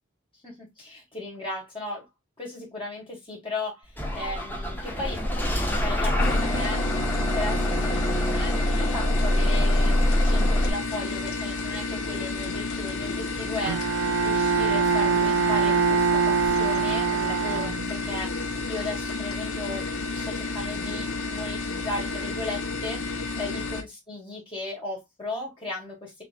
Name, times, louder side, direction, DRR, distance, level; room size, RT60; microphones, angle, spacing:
voice 1, 0.4-2.0 2.4-3.8 4.2-5.2 5.8-6.8 7.1-13.8 14.2-18.3 18.7-19.9 20.1-23.0 23.4-26.2, left 2 dB, 25° left, 2.1 m, -36 dB
Bus / Engine starting, 4.0-10.7, left 1 dB, 10° left, 1.2 m, -24 dB
sound 1, 6.2-23.8, left 3 dB, 85° left, 1.0 m, -31 dB
Bowed string instrument, 13.6-18.2, right 5 dB, 65° right, 0.6 m, -24 dB
6.6 x 3.2 x 2.4 m
head